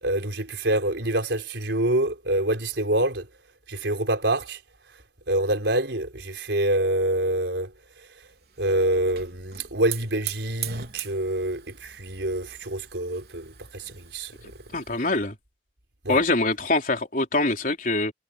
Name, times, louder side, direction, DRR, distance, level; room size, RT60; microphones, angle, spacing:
voice 1, 0.0-3.3 3.7-4.6 5.3-7.7 8.0-8.1 8.6-14.3 16.0-16.2, right 1 dB, 80° right, 4.5 m, -26 dB
Hiss / Fire, 8.2-15.1, right 11 dB, 60° right, 4.3 m, -41 dB
voice 2, 14.7-15.4 16.1-18.1, left 2 dB, 50° left, 3.9 m, -24 dB
head